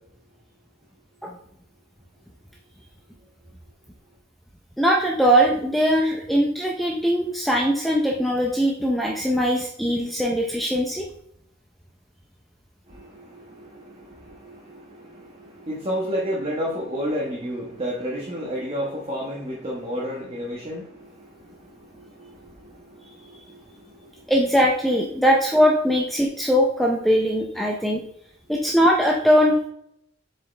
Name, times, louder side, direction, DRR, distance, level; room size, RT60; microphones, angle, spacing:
voice 1, 4.8-11.1 24.3-28.0 28.5-29.7, equal, ahead, -1 dB, 0.6 m, -21 dB
voice 2, 12.9-24.3, equal, 30° right, -4 dB, 1.2 m, -32 dB
7.2 x 4.9 x 3.3 m, 0.72 s
head